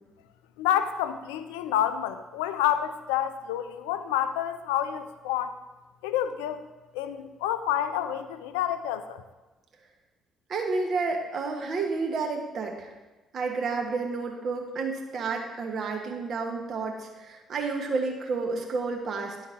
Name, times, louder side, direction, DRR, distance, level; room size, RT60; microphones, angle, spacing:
voice 1, 0.6-5.5 6.0-6.6 6.9-9.2, left 10 dB, 70° left, 11 dB, 0.3 m, -28 dB
voice 2, 10.5-12.9 13.3-19.4, right 4 dB, 50° right, 2 dB, 1.2 m, -30 dB
11.0 x 3.8 x 3.6 m, 1.2 s
figure-of-eight pair, 45°, 0 cm